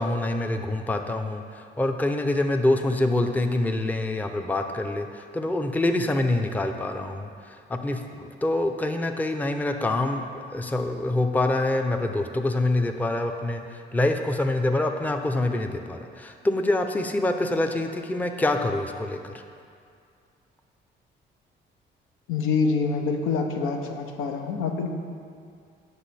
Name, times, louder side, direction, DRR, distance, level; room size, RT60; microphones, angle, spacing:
voice 1, 0.0-19.4, left 2 dB, 10° left, 5 dB, 0.5 m, -26 dB
voice 2, 22.3-24.9, left 4 dB, 90° left, 4 dB, 0.7 m, -26 dB
8.0 x 5.9 x 4.2 m, 2.4 s
cardioid pair, 90°, 20 cm